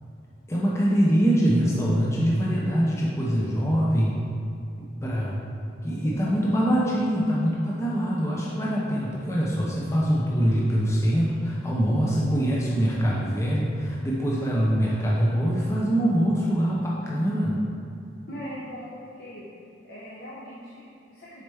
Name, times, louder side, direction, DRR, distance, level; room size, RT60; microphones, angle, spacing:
voice 1, 0.5-4.1 4.8-5.4 5.8-17.6, equal, 15° left, -5 dB, 0.5 m, -24 dB
voice 2, 6.0-6.5 18.3-19.5 19.8-21.4, equal, 55° left, -8 dB, 0.8 m, -39 dB
6.4 x 4.2 x 3.4 m, 2.6 s
head